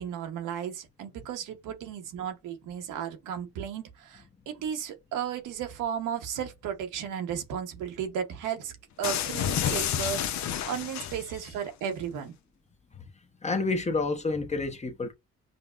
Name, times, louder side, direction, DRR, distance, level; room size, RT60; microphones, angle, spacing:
voice 1, 0.0-8.7 9.0-12.3, right 8 dB, 90° right, 1.0 m, -34 dB
sound 1, 9.0-11.5, left 9 dB, 65° left, 0.6 m, -30 dB
voice 2, 13.4-15.1, left 3 dB, 20° left, 0.8 m, -29 dB
5.2 x 2.1 x 2.3 m
cardioid pair, 90°, 30 cm